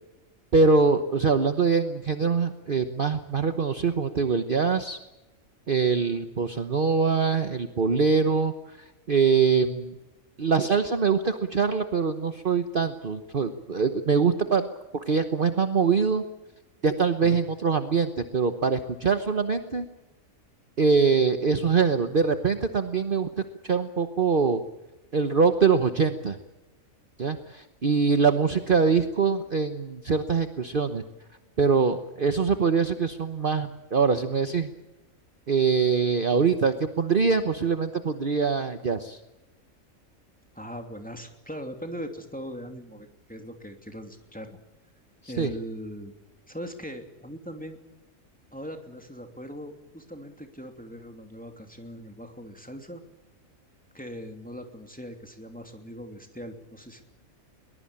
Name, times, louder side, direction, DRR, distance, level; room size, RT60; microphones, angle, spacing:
voice 1, 0.5-5.0 5.7-8.5 9.1-9.9 10.4-14.7 14.9-16.2 16.8-19.8 20.8-23.3 23.6-24.6 25.1-26.4 27.2-31.0 31.6-34.7 35.5-39.2 45.2-45.5, right 5 dB, 40° right, 8 dB, 1.2 m, -23 dB
voice 2, 40.5-44.6 45.3-46.1 46.5-47.8 48.5-53.0 53.9-57.0, equal, 5° left, 4 dB, 2.8 m, -40 dB
22.5 x 20.0 x 8.7 m, 1.0 s
omnidirectional pair, 1.4 m